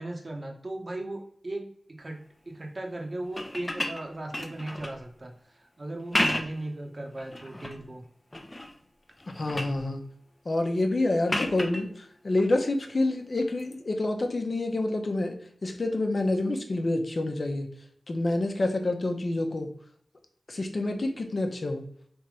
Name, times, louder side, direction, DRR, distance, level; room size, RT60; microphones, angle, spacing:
voice 1, 0.0-8.0, right 1 dB, 45° right, 2 dB, 1.0 m, -37 dB
sound 1, 3.2-5.0 5.9-6.7 7.2-7.8 8.3-8.8 9.1-9.8 11.3-11.8 13.6-13.7, left 1 dB, 25° left, 0.6 m, -32 dB
voice 2, 9.3-10.0 10.4-17.7 18.1-19.7 20.5-21.9, left 2 dB, 55° left, 4 dB, 0.9 m, -28 dB
3.6 x 3.0 x 4.8 m, 0.63 s
cardioid pair, 45°, 0 cm